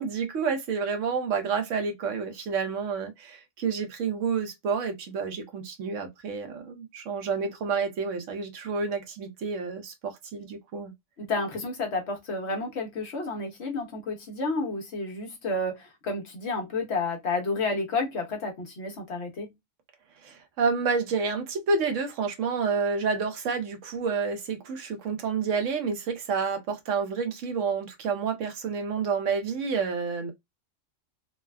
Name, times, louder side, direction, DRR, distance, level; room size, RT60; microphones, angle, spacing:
voice 1, 0.0-10.9 20.2-30.3, right 5 dB, 70° right, 1.1 m, -29 dB
voice 2, 11.2-19.5, left 3 dB, 60° left, 1.0 m, -31 dB
3.3 x 2.1 x 2.2 m
omnidirectional pair, 1.4 m